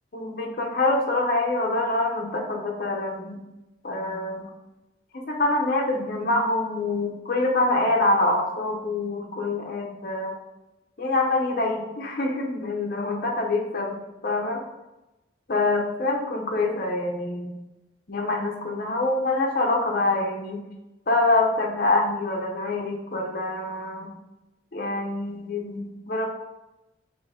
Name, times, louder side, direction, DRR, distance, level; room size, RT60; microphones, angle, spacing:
voice 1, 0.1-3.4 3.8-4.5 5.1-10.3 11.0-14.0 14.2-14.6 15.5-17.5 18.1-20.7 21.1-24.1 24.7-26.2, left 2 dB, 50° left, 1 dB, 0.7 m, -25 dB
3.7 x 3.1 x 4.1 m, 0.99 s
head